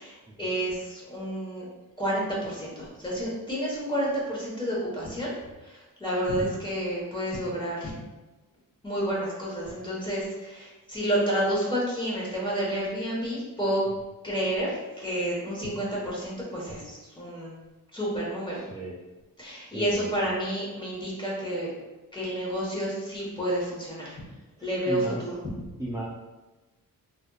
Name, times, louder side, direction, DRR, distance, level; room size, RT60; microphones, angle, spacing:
voice 1, 0.0-1.7 2.0-5.3 5.6-7.9 8.8-13.8 14.2-17.5 17.9-18.6 19.4-21.7 22.1-24.2 24.6-25.3, right 1 dB, 15° left, -5 dB, 1.2 m, -30 dB
voice 2, 18.5-18.9 19.7-20.1 24.6-25.2 25.8-26.0, right 1 dB, 10° right, -7 dB, 0.6 m, -35 dB
3.3 x 2.7 x 2.3 m, 1.1 s
cardioid pair, 90°, 35 cm